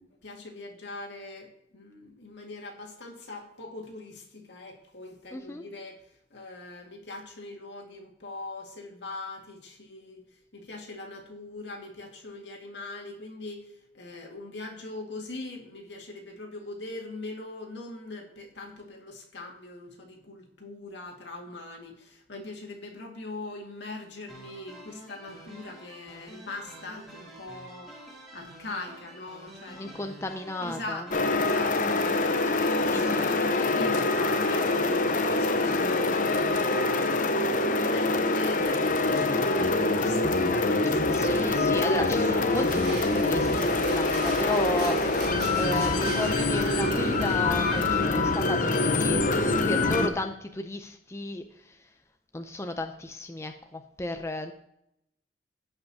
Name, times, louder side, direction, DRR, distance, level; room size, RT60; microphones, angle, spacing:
voice 1, 0.0-6.1 6.3-27.9 28.3-30.0 30.6-41.6, left 2 dB, 80° left, 1 dB, 2.0 m, -41 dB
voice 2, 5.3-5.6 29.7-31.0 31.8-32.1 32.6-33.3 41.1-51.8 52.3-54.5, left 2 dB, 15° left, 6 dB, 0.5 m, -34 dB
sound 1, 24.3-37.1, right 1 dB, ahead, 2.5 m, -48 dB
sound 2, 31.1-50.1, left 2 dB, 50° left, 0.7 m, -25 dB
sound 3, 41.2-48.1, right 1 dB, 60° right, 3.1 m, -37 dB
16.0 x 5.6 x 2.8 m, 0.78 s
head